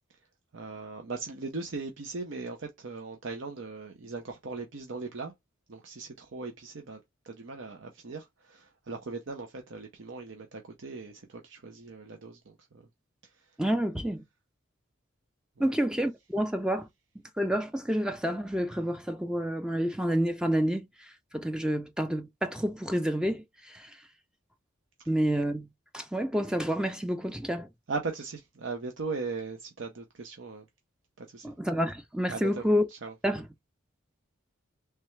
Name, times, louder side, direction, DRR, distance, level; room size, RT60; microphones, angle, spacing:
voice 1, 0.5-5.3 5.7-12.9 13.2-13.5 15.6-15.8 27.9-30.7 31.2-31.5 32.3-33.1, right 4 dB, 70° right, 0.7 m, -39 dB
voice 2, 13.6-14.2 15.6-16.9 17.4-20.9 21.3-24.0 25.1-25.7 25.9-27.7 31.4-32.8 33.2-33.4, equal, 5° right, 0.3 m, -29 dB
3.3 x 3.3 x 3.1 m
head